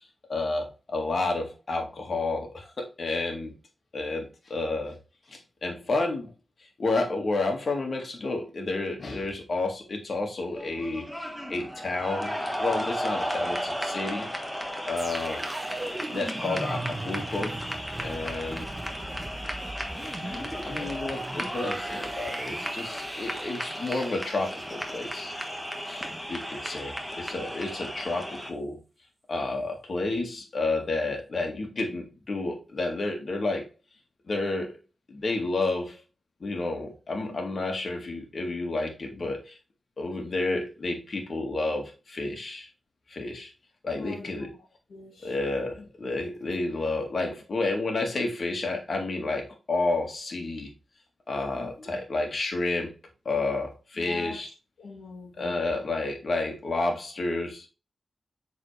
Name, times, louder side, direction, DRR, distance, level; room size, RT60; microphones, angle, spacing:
voice 1, 0.3-3.5 3.9-5.0 5.3-6.3 6.6-14.3 14.9-15.5 16.1-17.6 18.0-18.7 20.2-25.3 25.8-28.8 29.3-33.7 34.3-34.8 35.1-36.0 36.4-39.6 40.0-42.7 43.1-43.5 43.8-44.5 45.2-50.7 51.3-52.9 53.3-54.5 55.4-57.7, left 2 dB, 60° left, 2.0 m, -30 dB
sound 1, 10.5-28.5, equal, ahead, 1.4 m, -34 dB
sound 2, 15.0-26.2 26.5-26.6, right 2 dB, 25° right, 0.9 m, -39 dB
voice 2, 43.9-45.4 45.8-45.9 51.5-51.9 54.0-54.4 54.8-55.5, left 2 dB, 85° left, 1.7 m, -43 dB
7.4 x 4.1 x 3.3 m
cardioid pair, 65°, 0 cm